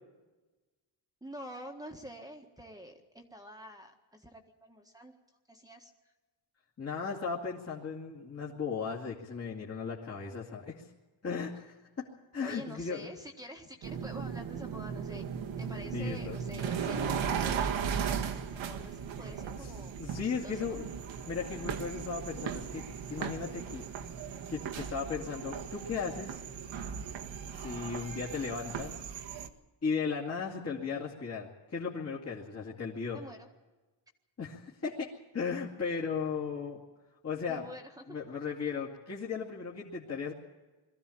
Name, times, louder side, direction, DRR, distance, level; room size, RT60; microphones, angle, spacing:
voice 1, 1.2-5.2 5.5-6.1 12.4-15.2 15.6-20.0 20.2-20.8 33.1-33.5 37.5-38.2, equal, 5° right, 2 dB, 1.6 m, -48 dB
voice 2, 6.8-10.9 11.2-12.0 12.3-13.1 15.7-16.4 20.0-20.8 21.3-23.9 24.5-26.4 27.5-29.0 29.8-33.2 34.4-35.1 35.3-36.8 37.2-37.6 38.1-40.3, left 5 dB, 30° left, -4 dB, 2.3 m, -36 dB
sound 1, 13.8-29.5, right 7 dB, 65° right, 1.7 m, -37 dB
22.0 x 14.5 x 8.6 m, 1.2 s
cardioid pair, 140°, 49 cm